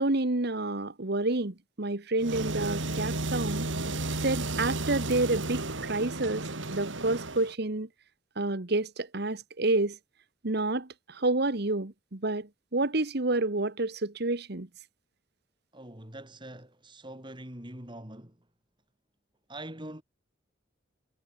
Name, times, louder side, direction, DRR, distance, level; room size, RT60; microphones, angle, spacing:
voice 1, 0.0-3.7 4.2-6.4 6.7-7.9 8.4-10.0 10.4-14.7, right 2 dB, 55° right, 1.5 m, -29 dB
sound 1, 2.2-7.5, right 2 dB, 80° right, 3.1 m, -33 dB
voice 2, 15.7-18.5 19.5-20.0, right 1 dB, 25° right, 4.4 m, -43 dB
head